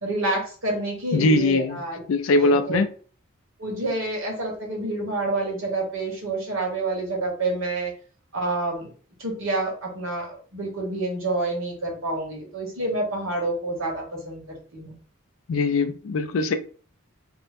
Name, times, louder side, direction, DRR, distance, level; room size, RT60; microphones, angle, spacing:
voice 1, 0.0-2.0 2.3-2.8 3.6-7.9 8.3-8.9 9.2-15.0, right 2 dB, 70° right, 1.1 m, -28 dB
voice 2, 1.1-1.8 2.1-2.9 15.5-16.5, left 2 dB, 70° left, 0.4 m, -21 dB
2.6 x 2.0 x 3.3 m
head